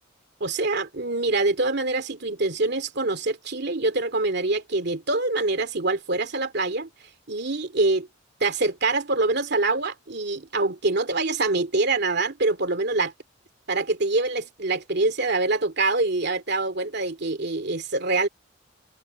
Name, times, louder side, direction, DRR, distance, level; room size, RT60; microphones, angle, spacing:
voice 1, 0.4-6.9 7.3-8.1 8.4-13.1 13.7-18.3, right 3 dB, 60° right, 2.6 m, -25 dB
open air
head